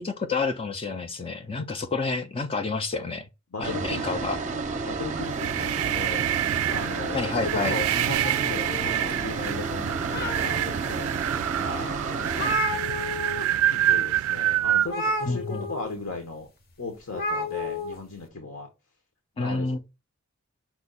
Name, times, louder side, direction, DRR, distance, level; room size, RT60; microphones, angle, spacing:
voice 1, 0.0-3.3 3.6-4.4 7.1-7.8 15.3-15.7 19.4-19.8, left 4 dB, 25° left, 0.4 m, -29 dB
voice 2, 3.5-4.2 4.4-6.2 6.7-13.1 13.7-16.5 16.8-18.7 19.4-19.8, left 3 dB, 75° left, 1.0 m, -37 dB
sound 1, 3.6-12.6, right 4 dB, 35° right, 0.6 m, -32 dB
sound 2, 5.1-14.9, right 12 dB, 80° right, 0.3 m, -27 dB
sound 3, 8.2-9.4 9.9-10.8 11.4-11.5 11.8-11.9 12.1-13.5 13.7-14.0 14.8-15.9 17.1-17.9, left 1 dB, 45° left, 0.8 m, -31 dB
6.0 x 2.3 x 3.9 m
head